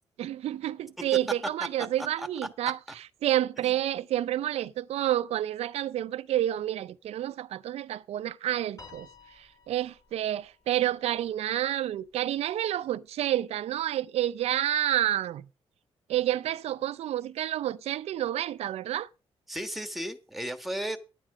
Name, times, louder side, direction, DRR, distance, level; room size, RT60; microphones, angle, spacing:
voice 1, 0.2-15.5 16.1-19.1, right 12 dB, 85° right, 0.5 m, -29 dB
Piano, 8.8-11.3, left 4 dB, 35° left, 6.4 m, -53 dB
voice 2, 19.5-21.0, equal, ahead, 1.3 m, -35 dB
10.5 x 9.1 x 4.9 m
cardioid pair, 100°, 10 cm